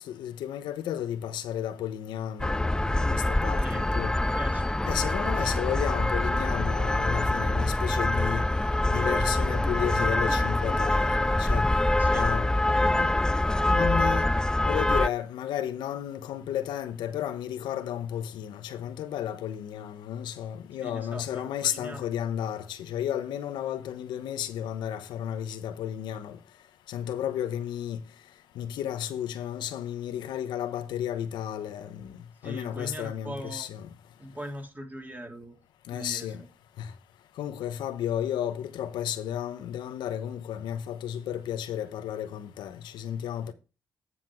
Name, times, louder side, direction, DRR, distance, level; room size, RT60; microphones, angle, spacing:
voice 1, 0.1-4.2 4.9-8.4 8.9-11.7 12.1-13.1 13.7-14.3 14.7-26.4 26.9-28.0 28.5-32.2 32.4-33.9 35.9-36.4 36.8-36.9 37.4-43.5, left 10 dB, 90° left, 0.8 m, -33 dB
sound 1, 2.4-15.1, left 1 dB, 10° left, 0.3 m, -25 dB
voice 2, 4.4-4.8 5.2-5.3 11.9-12.3 12.7-13.0 20.8-22.1 32.4-33.7 34.2-35.6 35.9-36.3, equal, 25° right, 2.8 m, -41 dB
9.6 x 5.7 x 4.5 m
supercardioid pair, 55°, 8 cm